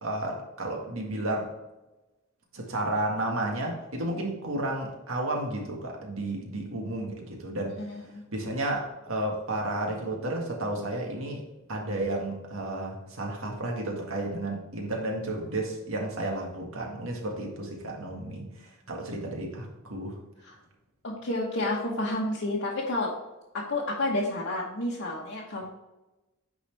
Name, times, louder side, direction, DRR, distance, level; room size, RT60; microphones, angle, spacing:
voice 1, 0.0-1.5 2.5-7.8 8.3-11.4 11.7-20.2, right 1 dB, 85° right, 0 dB, 1.8 m, -32 dB
voice 2, 7.8-8.2 20.4-20.5 21.0-23.1 23.5-25.7, left 2 dB, 70° left, -5 dB, 1.2 m, -30 dB
9.6 x 4.1 x 3.3 m, 1.0 s
head